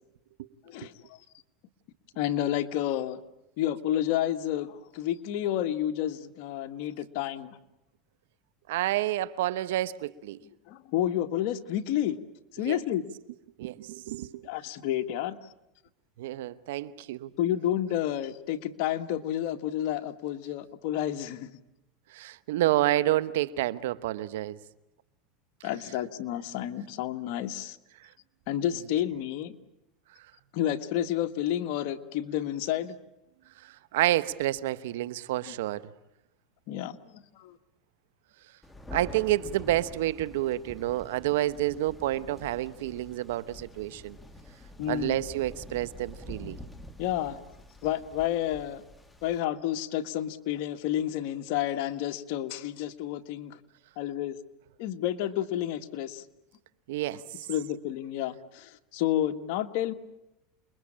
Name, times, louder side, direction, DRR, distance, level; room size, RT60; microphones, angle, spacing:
voice 1, 0.6-1.2 2.1-3.2 3.6-7.6 10.7-12.2 12.6-13.0 14.4-15.4 17.4-21.5 25.6-27.8 28.5-29.6 30.5-32.9 35.5-35.6 36.7-37.6 44.8-45.2 47.0-47.4 47.8-48.8 49.2-53.6 54.0-54.4 54.8-56.2 57.5-59.9, left 12 dB, 65° left, 1.6 m, -30 dB
voice 2, 8.7-10.4 12.6-12.8 13.6-14.4 16.2-17.3 22.1-24.6 33.6-35.8 38.9-44.2 44.9-46.6 56.9-57.5, right 15 dB, 85° right, 1.1 m, -29 dB
Thunder, 38.6-49.4, left 1 dB, 10° left, 2.2 m, -46 dB
29.0 x 21.5 x 8.8 m
supercardioid pair, 125°, 0 cm